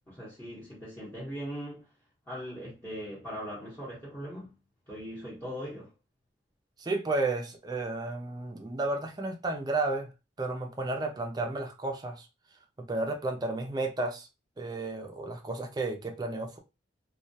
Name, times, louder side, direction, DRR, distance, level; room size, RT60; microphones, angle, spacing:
voice 1, 0.1-1.9 2.3-4.5 4.9-5.9, equal, 10° left, 0.8 m, -40 dB
voice 2, 6.8-10.1 10.4-12.3 12.8-14.3 14.6-16.6, right 2 dB, 20° right, 0.3 m, -32 dB
2.2 x 2.1 x 2.6 m
head